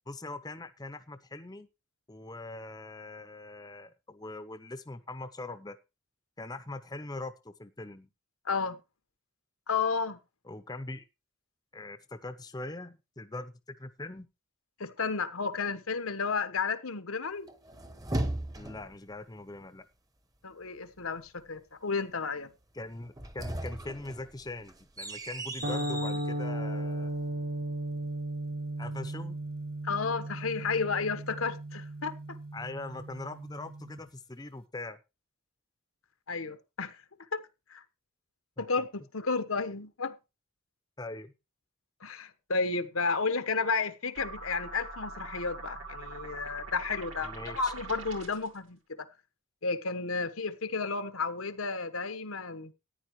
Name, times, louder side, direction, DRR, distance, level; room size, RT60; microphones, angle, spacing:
voice 1, 0.1-1.7 2.1-5.8 6.4-8.1 10.5-11.0 11.7-14.3 18.6-19.9 22.7-27.2 28.8-29.4 32.5-35.0 38.6-38.7 41.0-41.3 47.2-47.7, left 2 dB, 20° left, 0.7 m, -42 dB
voice 2, 8.4-8.8 9.7-10.2 14.8-17.5 20.4-22.5 29.8-32.1 36.3-37.0 37.3-37.4 37.7-37.8 38.6-40.2 42.0-49.1 49.6-52.7, left 4 dB, 85° left, 1.2 m, -32 dB
sound 1, 17.5-19.0 23.0-26.3, right 1 dB, 15° right, 0.9 m, -37 dB
sound 2, 25.6-34.0, right 1 dB, 45° right, 1.5 m, -36 dB
sound 3, 44.2-48.6, right 3 dB, 70° right, 2.6 m, -43 dB
14.0 x 10.0 x 3.1 m
head